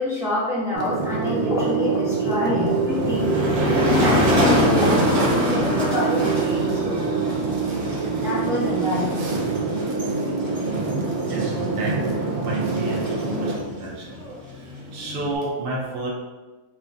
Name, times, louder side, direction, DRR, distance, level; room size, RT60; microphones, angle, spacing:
voice 1, 0.0-6.9 8.2-9.4, left 2 dB, 5° right, -7 dB, 0.5 m, -27 dB
sound 1, 0.7-13.6, right 4 dB, 75° right, 1.2 m, -25 dB
sound 2, 1.5-7.4, left 1 dB, 65° left, 1.0 m, -34 dB
Motor vehicle (road), 2.7-15.4, left 1 dB, 30° right, 1.3 m, -26 dB
voice 2, 11.3-12.0 12.4-14.1 14.9-16.1, right 1 dB, 55° right, -3 dB, 0.6 m, -30 dB
3.5 x 3.0 x 2.6 m, 1.2 s
omnidirectional pair, 1.6 m